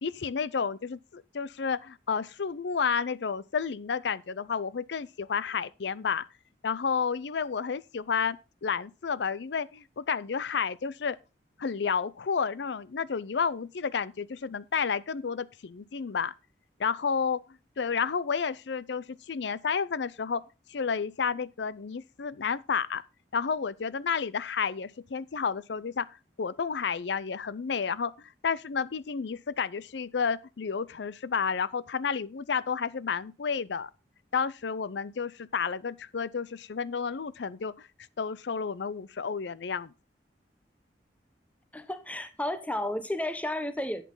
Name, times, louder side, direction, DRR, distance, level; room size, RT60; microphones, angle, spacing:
voice 1, 0.0-6.2 6.6-11.2 11.6-16.3 16.8-17.4 17.8-20.4 20.7-23.0 23.3-26.1 26.4-33.9 34.3-37.9 38.2-39.9, left 6 dB, 70° left, 0.5 m, -31 dB
voice 2, 41.7-44.0, left 1 dB, 10° left, 0.8 m, -32 dB
11.0 x 8.4 x 3.8 m
head